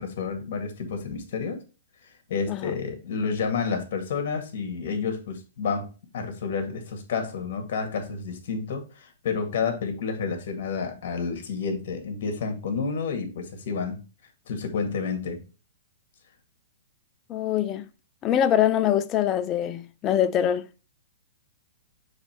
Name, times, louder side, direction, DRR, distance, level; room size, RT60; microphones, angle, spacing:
voice 1, 0.0-1.6 2.3-5.9 6.1-14.0 14.5-15.4, left 5 dB, 60° left, 2.0 m, -30 dB
voice 2, 17.3-17.9 18.2-20.7, left 10 dB, 25° left, 0.5 m, -23 dB
6.7 x 3.4 x 4.4 m
hypercardioid pair, 145°, 0 cm